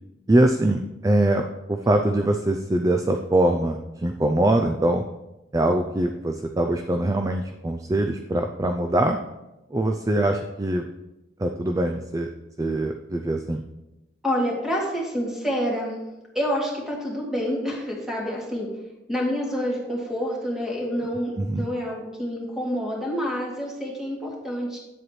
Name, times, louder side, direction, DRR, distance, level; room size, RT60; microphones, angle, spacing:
voice 1, 0.3-5.0 5.5-9.2 9.7-10.9 11.4-12.3 12.6-13.6 21.4-21.6, right 1 dB, 20° right, 5 dB, 0.4 m, -23 dB
voice 2, 14.2-16.0 16.3-18.7 19.1-24.8, equal, ahead, -4 dB, 2.2 m, -28 dB
9.7 x 7.7 x 3.1 m, 0.98 s
head